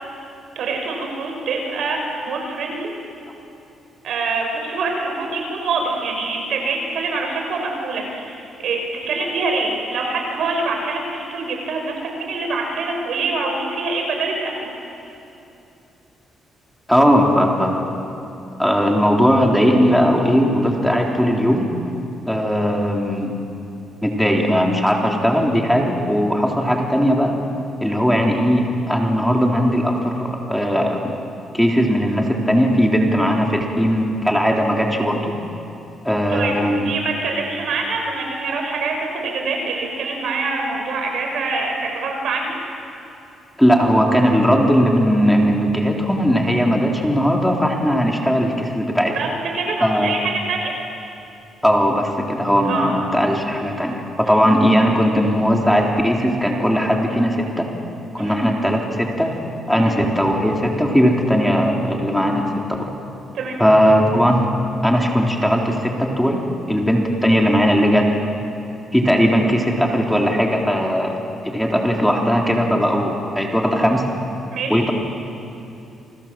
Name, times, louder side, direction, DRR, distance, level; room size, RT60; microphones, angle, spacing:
voice 1, 0.5-2.9 4.0-14.7 27.9-28.0 36.3-42.6 49.1-49.3 49.5-50.7 52.7-52.9 54.2-54.4 58.2-58.4 59.7-60.0 63.3-63.6 74.5-74.8, right 3 dB, 70° right, 1 dB, 6.9 m, -25 dB
voice 2, 16.9-17.9 18.6-21.6 22.3-23.3 24.0-27.3 27.8-31.2 31.5-35.3 36.0-37.0 43.6-49.2 49.8-50.2 51.6-57.7 58.1-59.3 59.7-62.9 63.6-64.5 64.8-66.4 66.7-68.1 68.9-71.2 71.4-74.1 74.7-74.9, equal, ahead, 0 dB, 3.6 m, -18 dB
29.5 x 23.5 x 7.6 m, 2.8 s
cardioid pair, 90°, 0 cm